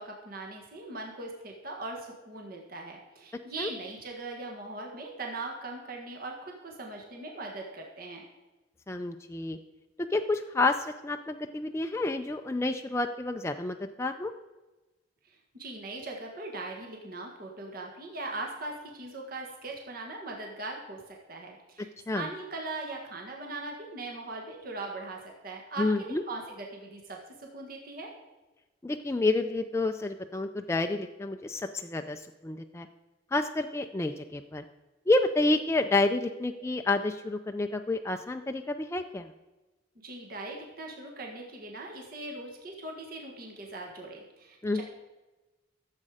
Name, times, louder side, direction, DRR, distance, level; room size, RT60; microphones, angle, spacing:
voice 1, 0.0-8.2 15.2-28.1 40.0-44.8, right 2 dB, 50° right, 1 dB, 1.6 m, -40 dB
voice 2, 8.9-9.6 10.1-14.3 22.1-22.3 25.8-26.2 28.8-32.9 33.3-34.6 35.1-39.3 44.6-44.8, left 2 dB, 15° left, 5 dB, 0.4 m, -29 dB
14.0 x 7.5 x 4.9 m, 1.1 s
head